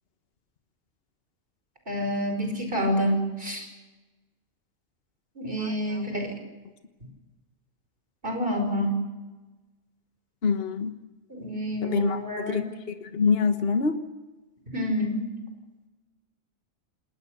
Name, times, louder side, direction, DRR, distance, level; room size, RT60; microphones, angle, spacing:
voice 1, 1.9-3.7 5.4-6.3 8.2-9.0 11.3-12.7 14.7-15.3, equal, 40° right, 4 dB, 5.4 m, -28 dB
voice 2, 10.4-10.9 11.8-12.6 13.1-14.0, left 5 dB, 50° left, 7 dB, 1.6 m, -25 dB
29.5 x 20.0 x 6.5 m, 1.2 s
omnidirectional pair, 1.4 m